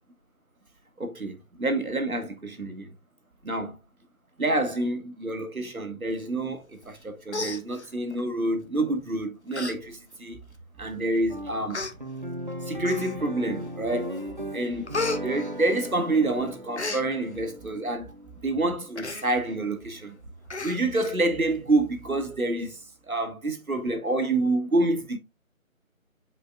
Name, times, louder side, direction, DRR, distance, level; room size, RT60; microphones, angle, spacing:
voice 1, 1.0-2.9 3.4-3.8 4.4-10.4 10.8-11.8 12.7-14.2 14.5-14.9 15.2-18.1 18.4-20.1 20.6-22.8 23.1-25.2, right 2 dB, 80° right, 1.8 m, -27 dB
Human voice, 6.8-7.0 7.3-8.2 8.9-9.1 9.5-9.7 10.1-10.2 11.0-11.1 11.7-11.9 12.8-13.4 13.8-14.2 14.5-16.2 16.5-17.0 18.9-19.2 19.6-19.7 20.0-20.1 20.5-21.1 21.5-21.6, left 3 dB, 50° left, 1.0 m, -33 dB
sound 1, 10.3-11.6 12.7-16.4 17.3-18.6 19.3-23.3, right 5 dB, 10° right, 4.7 m, -51 dB
sound 2, 11.3-19.8, equal, 35° right, 0.6 m, -38 dB
8.5 x 5.0 x 2.4 m
figure-of-eight pair, 165°, 42 cm